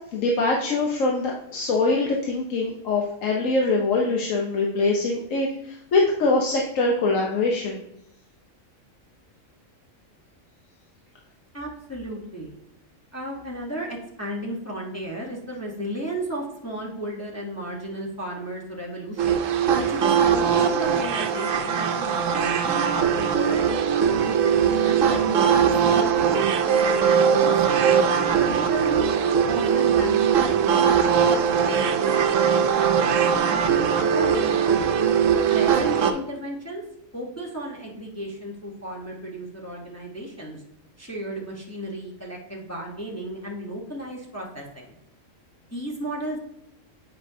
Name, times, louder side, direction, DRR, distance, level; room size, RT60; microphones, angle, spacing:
voice 1, 0.1-7.8, left 3 dB, 75° left, -1 dB, 1.2 m, -23 dB
voice 2, 11.5-12.5 13.1-19.4 19.8-23.7 24.2-27.5 28.3-34.9 35.5-36.8 37.1-40.6 41.0-44.9 45.7-46.4, right 1 dB, 15° left, -2 dB, 0.9 m, -34 dB
sound 1, 19.2-36.1, right 7 dB, 75° right, 1.0 m, -21 dB
8.0 x 5.3 x 2.7 m, 0.78 s
omnidirectional pair, 1.4 m